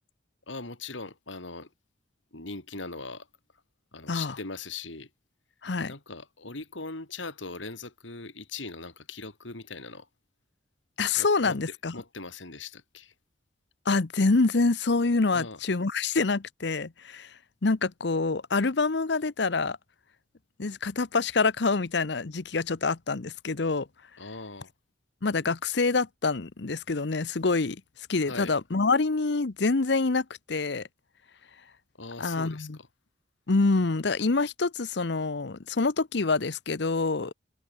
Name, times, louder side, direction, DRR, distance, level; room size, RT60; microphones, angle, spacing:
voice 1, 0.5-1.7 2.3-3.3 3.9-5.1 5.9-10.1 11.2-11.6 11.9-13.1 15.3-15.6 24.2-24.7 28.3-28.6 32.0-32.9, left 3 dB, 80° left, 3.3 m, -40 dB
voice 2, 11.0-11.9 13.9-17.3 17.6-19.8 20.6-23.9 25.2-27.8 28.1-30.9 32.2-32.8 33.5-37.3, left 3 dB, 65° left, 0.8 m, -26 dB
head